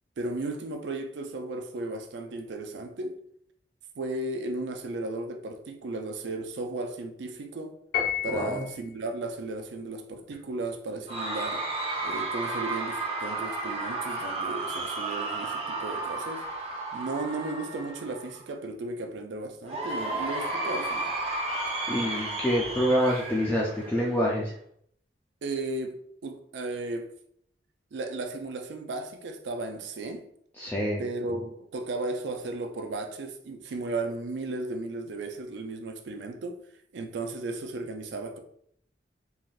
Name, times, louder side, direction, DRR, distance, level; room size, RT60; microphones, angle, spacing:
voice 1, 0.2-3.2 4.0-7.8 8.2-11.6 12.0-16.5 16.9-21.1 25.4-25.9 26.2-27.1 27.9-30.2 31.0-36.6 36.9-38.4, right 2 dB, 75° right, 0.4 m, -35 dB
Piano, 7.9-8.8, left 9 dB, 60° left, 0.8 m, -30 dB
voice 2, 8.2-8.6 21.9-24.5 30.6-31.0, equal, 10° left, 0.4 m, -26 dB
Cheering / Crowd, 11.1-18.4 19.6-24.4, right 2 dB, 35° right, 0.7 m, -33 dB
3.2 x 2.5 x 2.3 m
head